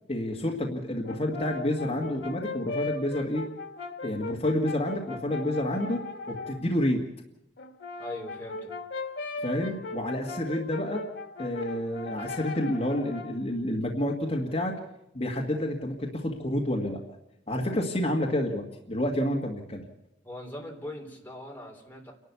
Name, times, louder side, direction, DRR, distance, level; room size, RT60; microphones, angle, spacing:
voice 1, 0.1-3.4 4.0-7.0 9.4-11.0 11.4-14.7 15.1-17.0 17.5-19.8, left 1 dB, 35° left, 0 dB, 1.9 m, -29 dB
Brass instrument, 1.0-6.6 7.6-13.4, left 3 dB, 80° left, 1.8 m, -38 dB
voice 2, 8.0-8.7 20.2-22.1, left 1 dB, 10° left, 0 dB, 3.4 m, -41 dB
28.5 x 12.0 x 8.3 m, 0.87 s
head